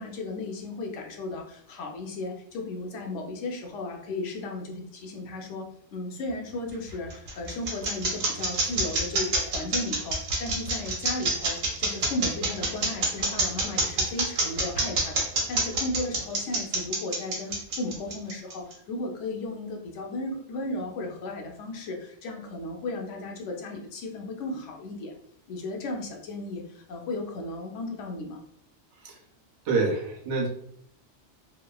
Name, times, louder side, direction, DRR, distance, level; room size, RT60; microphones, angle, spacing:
voice 1, 0.0-25.1 25.5-28.4, left 2 dB, 70° left, 1 dB, 0.9 m, -35 dB
sound 1, 6.7-18.7, right 3 dB, 85° right, 1.2 m, -26 dB
voice 2, 29.7-30.5, right 3 dB, 70° right, 1 dB, 0.9 m, -26 dB
3.1 x 2.1 x 2.2 m, 0.68 s
omnidirectional pair, 1.3 m